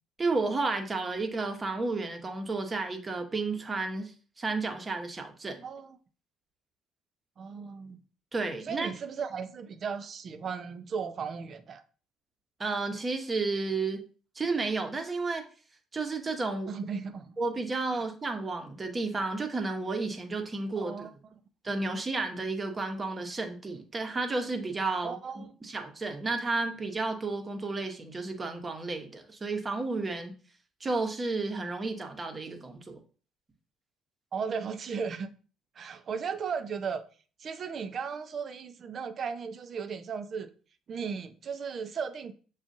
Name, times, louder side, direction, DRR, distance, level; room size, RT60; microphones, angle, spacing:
voice 1, 0.2-4.1 4.4-5.6 8.3-8.9 12.6-14.0 14.4-15.4 15.9-16.7 17.4-21.1 21.6-30.3 30.8-33.0, right 3 dB, 30° right, 1.0 m, -32 dB
voice 2, 5.6-6.0 7.4-8.0 8.6-11.8 16.7-17.4 17.9-18.0 20.8-21.1 25.0-25.6 34.3-35.3 35.8-37.0 37.4-40.5 40.9-42.3, right 6 dB, 50° right, 0.6 m, -36 dB
7.0 x 2.4 x 2.6 m
hypercardioid pair, 50°, 0 cm